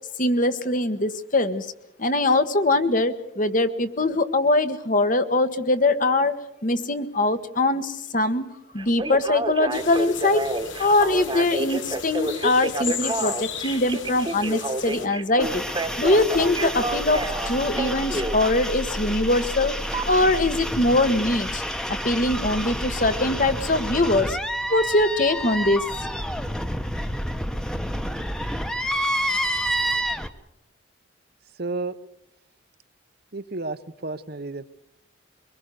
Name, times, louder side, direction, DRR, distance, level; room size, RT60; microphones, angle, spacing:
voice 1, 0.2-1.7 2.0-6.4 6.6-8.5 8.7-10.4 10.8-15.6 16.0-19.8 20.1-21.6 22.0-24.4 24.7-25.9, left 2 dB, 40° left, 10 dB, 1.4 m, -22 dB
Telephone, 8.8-18.4 19.9-20.1, right 2 dB, 25° right, 1.3 m, -29 dB
sound 1, 9.7-15.1, left 8 dB, 75° left, 2.5 m, -35 dB
sound 2, 15.4-30.3, equal, 5° left, 1.1 m, -29 dB
voice 2, 31.6-32.0 33.3-34.6, right 3 dB, 55° right, 11 dB, 1.0 m, -31 dB
23.5 x 22.5 x 6.7 m, 0.81 s
head